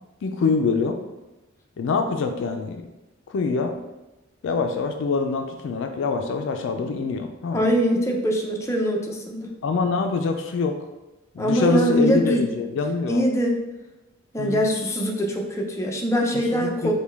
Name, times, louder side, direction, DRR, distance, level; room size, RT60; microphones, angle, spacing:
voice 1, 0.2-1.0 1.8-2.8 3.3-3.8 4.4-7.6 9.6-10.8 11.3-13.3 14.4-14.6 16.3-16.9, left 4 dB, 65° left, 5 dB, 0.4 m, -25 dB
voice 2, 7.5-9.5 11.4-12.4 13.1-13.6 14.3-16.9, equal, 15° left, 0 dB, 0.5 m, -23 dB
5.0 x 2.2 x 3.4 m, 1.0 s
head